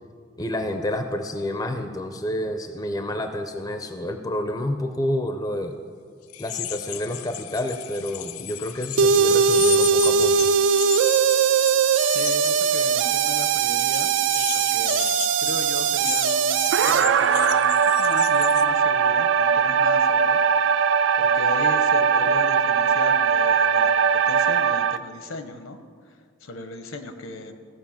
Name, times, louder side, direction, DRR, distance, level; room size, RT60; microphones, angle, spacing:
voice 1, 0.4-5.7 6.4-10.5, left 1 dB, 15° left, 7 dB, 0.5 m, -29 dB
sound 1, 6.3-18.6, left 14 dB, 90° left, 0.5 m, -34 dB
sound 2, 9.0-25.0, right 6 dB, 60° right, 0.3 m, -20 dB
voice 2, 12.1-20.4 20.7-25.8 26.1-26.2 26.4-27.6, left 3 dB, 70° left, 8 dB, 0.9 m, -37 dB
16.0 x 5.4 x 7.2 m, 2.1 s
head